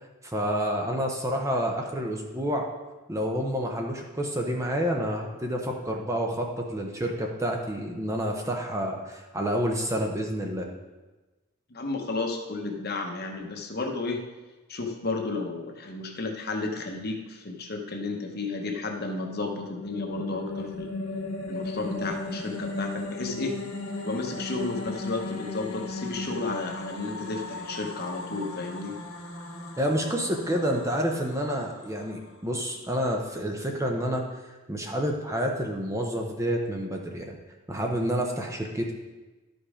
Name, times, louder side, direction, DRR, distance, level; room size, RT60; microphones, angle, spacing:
voice 1, 0.2-2.7 3.1-10.7 29.8-34.2 34.7-37.3 37.7-38.9, equal, 15° right, 1 dB, 0.7 m, -29 dB
voice 2, 11.7-14.2 14.7-20.9 21.5-23.6 24.0-29.0, left 3 dB, 45° left, 3 dB, 1.0 m, -32 dB
sound 1, 19.1-32.3, left 2 dB, 75° left, 1.6 m, -36 dB
11.5 x 5.3 x 4.9 m, 1.2 s
head